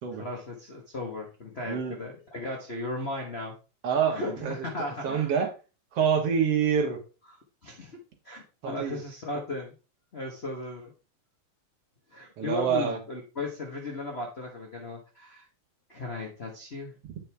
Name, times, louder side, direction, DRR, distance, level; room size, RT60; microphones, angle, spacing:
voice 1, 0.2-3.5 4.1-5.3 7.6-8.0 8.2-9.7 10.1-10.9 12.1-15.5 15.9-16.9, left 2 dB, 65° left, 0 dB, 0.6 m, -36 dB
voice 2, 3.8-4.7 5.0-5.5 5.9-7.0 8.6-9.0 12.4-13.0 17.1-17.2, right 7 dB, 60° right, 2 dB, 2.3 m, -26 dB
8.9 x 5.4 x 3.4 m, 0.33 s
omnidirectional pair, 3.3 m